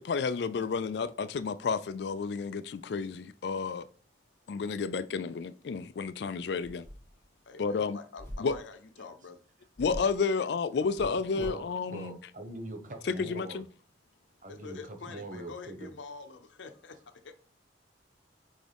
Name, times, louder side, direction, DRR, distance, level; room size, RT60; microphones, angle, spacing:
voice 1, 0.0-3.9 4.5-6.9 7.6-8.0 8.4-8.6 9.8-12.2 13.0-13.6, left 5 dB, 60° left, 0.4 m, -31 dB
sound 1, 6.6-7.2 8.2-8.6 9.7-10.2 10.9-11.7, equal, 15° left, 3.0 m, -43 dB
voice 2, 7.4-9.4 14.5-17.3, left 4 dB, 80° left, 0.8 m, -46 dB
voice 3, 11.0-13.6 14.4-15.9, right 1 dB, 45° right, 1.1 m, -42 dB
6.3 x 4.6 x 3.5 m
head